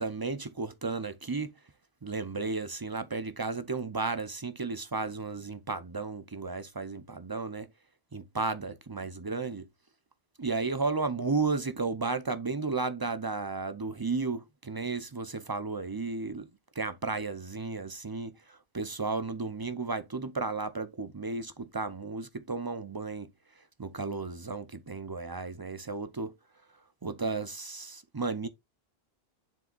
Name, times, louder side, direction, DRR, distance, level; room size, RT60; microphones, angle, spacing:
voice 1, 0.0-1.5 2.0-7.7 8.1-9.7 10.4-16.5 16.8-23.3 23.8-26.3 27.0-28.5, right 3 dB, 30° right, 0.4 m, -33 dB
7.4 x 3.4 x 3.9 m
omnidirectional pair, 1.0 m